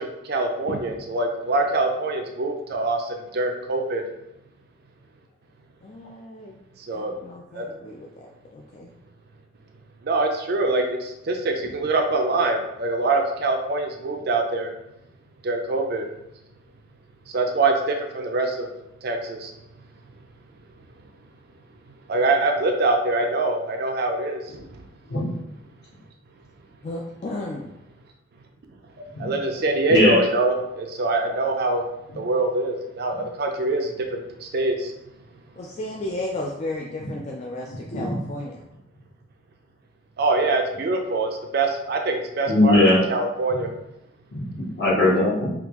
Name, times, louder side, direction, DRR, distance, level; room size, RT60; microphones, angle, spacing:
voice 1, 0.0-4.0 6.8-7.1 7.5-7.6 10.0-14.7 15.4-16.1 17.3-18.7 19.0-19.5 22.1-24.8 29.0-31.8 32.2-34.9 40.2-43.7, right 2 dB, 55° right, 3 dB, 0.4 m, -24 dB
voice 2, 5.8-6.6 6.9-8.3 8.5-8.9 26.8-27.7 35.6-38.6, left 1 dB, 35° left, -1 dB, 0.3 m, -34 dB
voice 3, 42.5-43.0 44.3-45.5, left 1 dB, 60° left, -7 dB, 1.3 m, -20 dB
3.6 x 2.4 x 2.9 m, 0.87 s
head